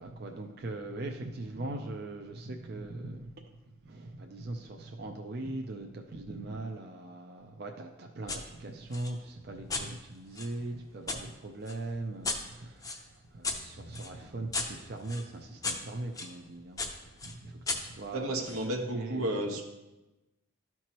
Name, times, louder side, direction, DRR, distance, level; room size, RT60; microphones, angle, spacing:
voice 1, 0.0-19.4, right 2 dB, 50° right, 3 dB, 0.5 m, -40 dB
sound 1, 8.3-8.4 8.9-11.2 11.7-16.3 16.8-18.7, left 3 dB, 15° left, 0.6 m, -37 dB
voice 2, 18.1-19.6, right 1 dB, 90° right, 2 dB, 1.1 m, -32 dB
12.5 x 4.5 x 3.0 m, 1.0 s
head